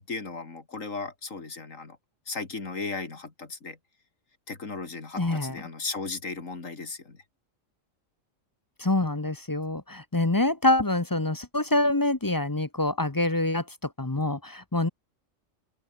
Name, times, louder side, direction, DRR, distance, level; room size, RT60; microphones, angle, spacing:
voice 1, 0.0-2.0 2.3-3.8 4.5-7.2, left 4 dB, 80° left, 3.3 m, -36 dB
voice 2, 5.2-5.6 8.8-13.6 14.0-14.9, left 2 dB, 20° left, 0.9 m, -25 dB
open air
omnidirectional pair, 1.3 m